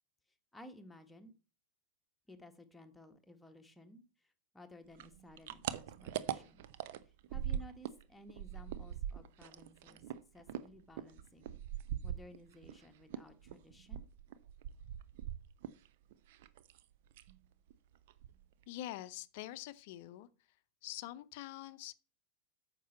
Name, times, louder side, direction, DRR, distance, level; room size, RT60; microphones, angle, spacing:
voice 1, 0.5-1.3 2.3-6.6 7.3-10.0 10.3-11.6 12.0-14.0, left 1 dB, 5° left, 1.5 m, -56 dB
sound 1, 4.9-8.0 8.3-12.8 13.1-16.8 17.1-17.4 17.7-17.8 18.1-18.6, right 10 dB, 50° right, 0.7 m, -41 dB
voice 2, 18.7-20.3 20.8-21.9, left 14 dB, 50° left, 0.7 m, -45 dB
9.3 x 6.9 x 4.2 m
figure-of-eight pair, 90°, 0 cm